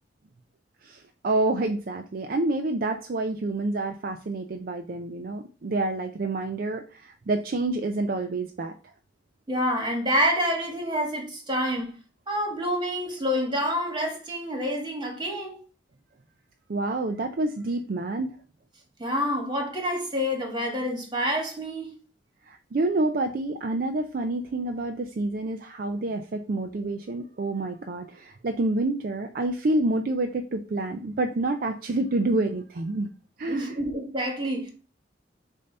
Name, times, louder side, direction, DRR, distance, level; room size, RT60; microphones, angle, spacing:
voice 1, 0.8-8.7 16.7-18.4 22.5-33.1 33.4-33.8, right 2 dB, 50° right, 0.4 m, -28 dB
voice 2, 9.5-11.9 12.3-15.6 19.0-21.9 33.5-34.7, equal, 25° right, 1.8 m, -27 dB
6.7 x 2.8 x 5.3 m
head